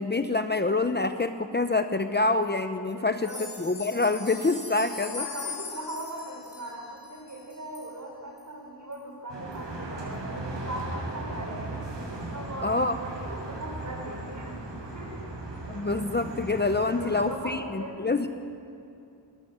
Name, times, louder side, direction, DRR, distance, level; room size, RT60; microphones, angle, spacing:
voice 1, 0.0-5.2 12.6-13.0 15.7-18.3, left 3 dB, 25° left, 8 dB, 0.9 m, -26 dB
voice 2, 2.9-3.4 5.0-11.6 12.2-15.3 16.9-18.3, right 1 dB, 40° right, 1 dB, 6.1 m, -39 dB
sound 1, 3.2-7.9 8.4-8.5 8.9-9.0 9.5-9.6, left 5 dB, 50° left, 6.5 m, -41 dB
sound 2, 9.3-17.3, right 2 dB, 75° right, 7.6 m, -37 dB
21.0 x 20.5 x 8.2 m, 2.6 s
wide cardioid pair, 85°, 43 cm